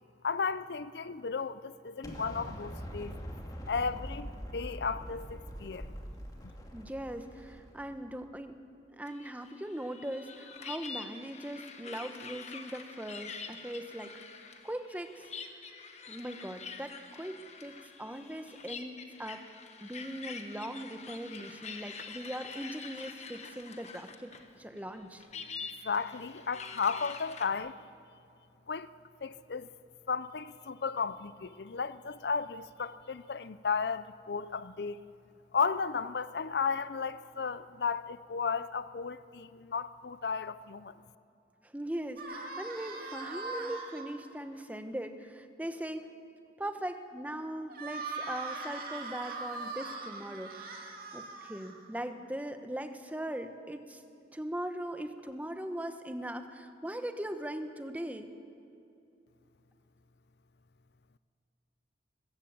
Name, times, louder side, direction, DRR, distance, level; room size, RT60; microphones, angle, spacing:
voice 1, 0.2-3.2 3.7-6.0 25.8-27.7 28.7-28.9 29.2-29.7 30.1-35.0 35.5-40.9, left 5 dB, 65° left, 0.5 m, -34 dB
Explosion, 2.0-8.0, equal, 20° left, 2.4 m, -43 dB
voice 2, 6.7-8.6 8.9-15.6 16.1-19.4 19.8-24.3 24.6-25.2 41.6-46.1 46.6-54.0 54.3-58.3, right 1 dB, 10° right, 1.0 m, -40 dB
sound 1, 9.0-24.5 24.8-27.5, left 5 dB, 40° left, 1.3 m, -46 dB
sound 2, 42.2-44.0 47.7-52.0, right 3 dB, 55° right, 2.5 m, -41 dB
22.0 x 14.5 x 8.7 m
head